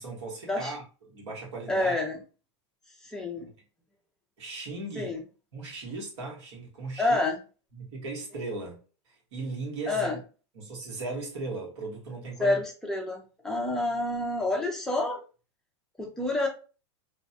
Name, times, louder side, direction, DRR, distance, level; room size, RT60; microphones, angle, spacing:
voice 1, 0.0-1.9 4.4-5.1 5.5-7.2 7.7-8.8 9.3-10.2 10.5-12.6, right 3 dB, 70° right, 1.2 m, -37 dB
voice 2, 1.7-2.2 3.0-3.5 5.0-5.2 7.0-7.4 9.9-10.2 12.4-15.2 16.0-16.5, left 2 dB, 5° left, 0.5 m, -28 dB
2.5 x 2.1 x 2.6 m
supercardioid pair, 150°, 15 cm